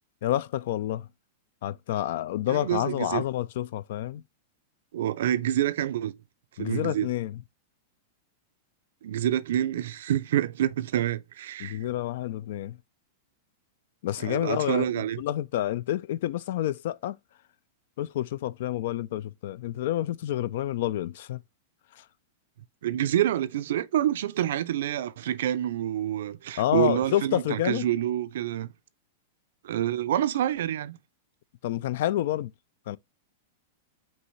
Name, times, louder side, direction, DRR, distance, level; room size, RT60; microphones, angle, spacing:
voice 1, 0.2-1.1 1.6-4.2 6.6-7.4 11.6-12.8 14.0-17.2 18.0-21.4 21.9-22.0 26.6-27.9 31.6-32.5 32.9-33.0, left 13 dB, 65° left, 0.3 m, -29 dB
voice 2, 2.5-3.2 4.9-6.1 6.6-7.1 9.0-11.8 14.2-15.2 22.8-28.7 29.6-31.0, right 11 dB, 75° right, 0.4 m, -27 dB
5.3 x 2.8 x 3.1 m
hypercardioid pair, 135°, 0 cm